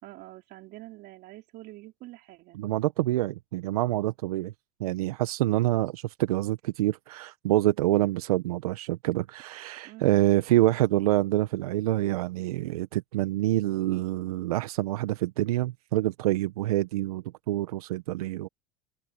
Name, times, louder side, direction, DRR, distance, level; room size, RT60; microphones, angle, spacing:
voice 1, 0.0-2.6 9.8-10.3, right 18 dB, 60° right, 3.6 m, -46 dB
voice 2, 2.5-4.5 4.8-18.5, right 16 dB, 85° right, 1.2 m, -26 dB
open air
hypercardioid pair, 85°, 19 cm